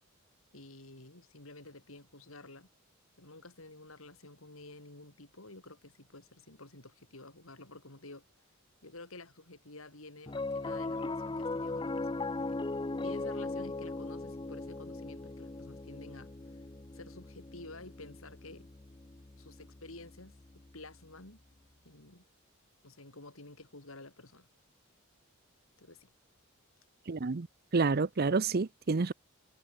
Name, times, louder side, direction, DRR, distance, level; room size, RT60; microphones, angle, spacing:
voice 1, 0.5-2.7 3.2-8.3 8.8-12.6 13.0-16.3 16.9-18.7 19.4-20.4 20.7-21.4 21.8-22.2 22.8-24.5 25.8-26.1, left 2 dB, 70° left, 4.5 m, -51 dB
Piano, 10.3-20.8, left 2 dB, 20° left, 0.6 m, -39 dB
voice 2, 27.1-27.5 27.7-29.1, right 4 dB, 45° right, 0.6 m, -29 dB
head